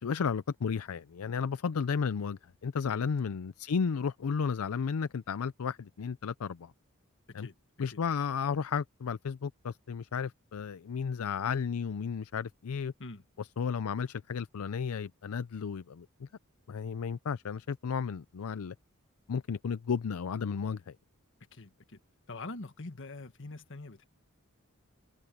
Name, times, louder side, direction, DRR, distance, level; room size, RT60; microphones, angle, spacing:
voice 1, 0.0-6.7 7.3-7.5 7.8-12.9 13.4-16.3 16.7-18.7 19.3-21.0, left 6 dB, 80° left, 0.5 m, -33 dB
voice 2, 21.5-22.0 22.3-24.0, left 2 dB, 65° left, 1.7 m, -44 dB
head